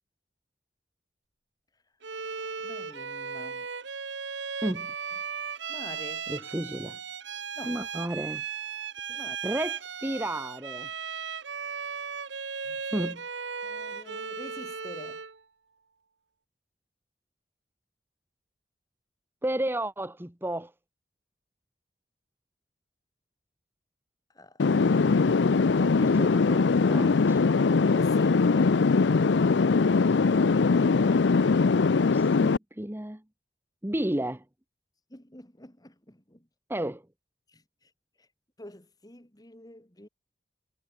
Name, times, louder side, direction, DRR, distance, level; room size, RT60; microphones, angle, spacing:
Bowed string instrument, 2.0-15.4, right 6 dB, 75° right, 1.5 m, -36 dB
voice 1, 2.6-3.7 5.7-6.3 7.6-7.9 9.1-9.4 12.6-12.8 13.6-15.2 24.3-25.6 27.6-28.7 35.1-36.5 37.5-37.6 38.6-40.1, left 1 dB, 20° left, 2.4 m, -47 dB
voice 2, 4.6-4.9 6.3-7.0 7.6-8.4 9.1-10.9 12.9-13.2 19.4-20.7 25.6-26.6 26.9-27.4 29.9-30.1 30.8-31.2 32.1-33.2 33.8-34.4 36.7-37.0, right 1 dB, 10° right, 1.1 m, -33 dB
sound 1, 24.6-32.6, left 4 dB, 70° left, 0.5 m, -22 dB
head